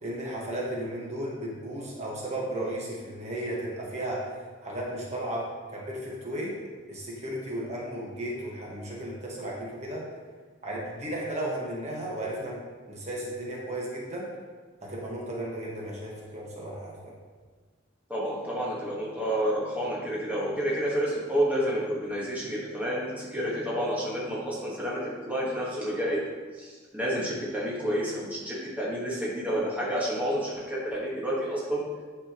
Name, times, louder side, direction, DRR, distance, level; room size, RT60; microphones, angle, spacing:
voice 1, 0.0-4.3 4.6-6.6 6.9-10.1 10.6-12.6 12.9-14.3 14.8-17.1, right 1 dB, 35° right, -4 dB, 1.4 m, -34 dB
voice 2, 18.1-26.2 26.6-31.8, equal, 10° right, -6 dB, 1.4 m, -29 dB
9.4 x 6.1 x 3.0 m, 1.5 s
head